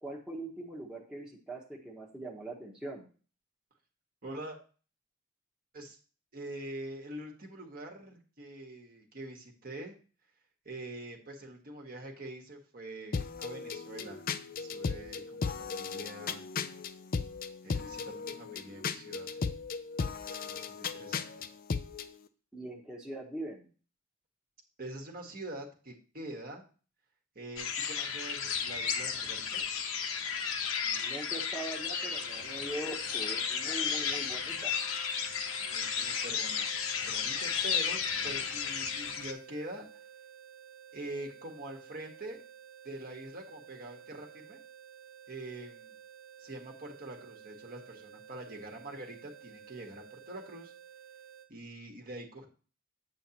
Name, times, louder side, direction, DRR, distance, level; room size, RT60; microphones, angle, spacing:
voice 1, 0.0-3.1 22.5-23.7 30.8-34.7, right 1 dB, 5° right, -2 dB, 1.1 m, -42 dB
voice 2, 4.2-4.6 5.7-6.0 6.3-10.0 10.6-14.3 14.5-16.4 17.6-19.5 20.3-21.5 24.8-26.6 27.3-29.6 35.7-39.9 40.9-42.4 42.8-44.6 45.3-45.9 46.4-50.7 51.5-52.5, right 1 dB, 45° right, 2 dB, 1.4 m, -44 dB
sound 1, 13.1-22.1, left 5 dB, 45° left, 0.5 m, -36 dB
sound 2, 27.6-39.3, left 6 dB, 80° left, 1.0 m, -33 dB
sound 3, 31.8-51.5, right 9 dB, 65° right, 0.9 m, -53 dB
8.2 x 7.6 x 2.9 m, 0.38 s
head